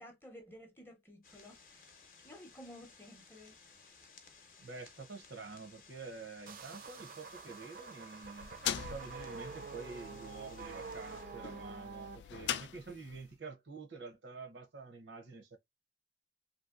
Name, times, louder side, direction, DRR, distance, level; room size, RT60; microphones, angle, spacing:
voice 1, 0.0-1.9 2.2-3.5, left 1 dB, 10° left, 0.6 m, -53 dB
sound 1, 1.2-11.2, left 5 dB, 50° left, 0.7 m, -59 dB
voice 2, 4.6-8.5 8.8-15.6, right 4 dB, 80° right, 0.6 m, -48 dB
sound 2, 6.5-12.2, right 5 dB, 50° right, 0.3 m, -48 dB
sound 3, 8.2-13.3, left 9 dB, 85° left, 0.4 m, -42 dB
3.0 x 2.6 x 2.4 m
head